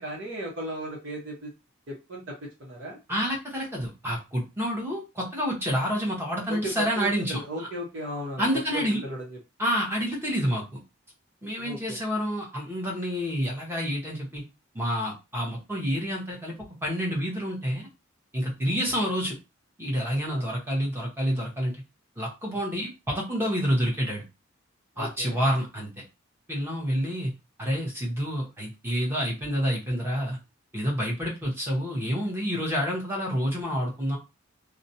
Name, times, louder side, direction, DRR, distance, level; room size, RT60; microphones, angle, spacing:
voice 1, 0.0-1.5 1.9-3.0 6.5-8.4 8.7-9.2 11.6-12.0 20.3-20.5 25.0-25.4, right 1 dB, 65° right, -4 dB, 0.8 m, -36 dB
voice 2, 3.1-7.4 8.4-9.0 9.6-10.8 11.4-14.4 14.7-16.5 16.8-17.9 18.3-19.4 19.8-21.8 22.2-24.2 25.0-25.9 26.5-27.3 27.6-30.4 30.7-34.2, equal, 10° right, -3 dB, 0.8 m, -28 dB
2.4 x 2.0 x 2.7 m, 0.26 s
head